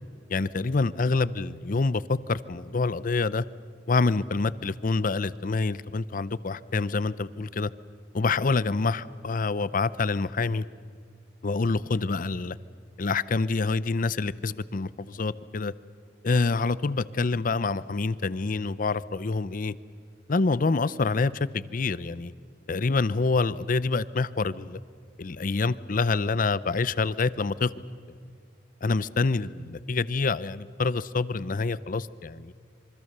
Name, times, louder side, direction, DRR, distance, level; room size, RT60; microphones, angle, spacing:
voice 1, 0.3-3.4 3.9-7.7 8.1-10.6 11.4-12.6 13.0-15.7 16.2-19.7 20.3-22.3 22.7-24.8 25.2-27.7 28.8-32.5, left 3 dB, 50° left, 17 dB, 0.6 m, -26 dB
26.5 x 24.0 x 6.7 m, 2.3 s
head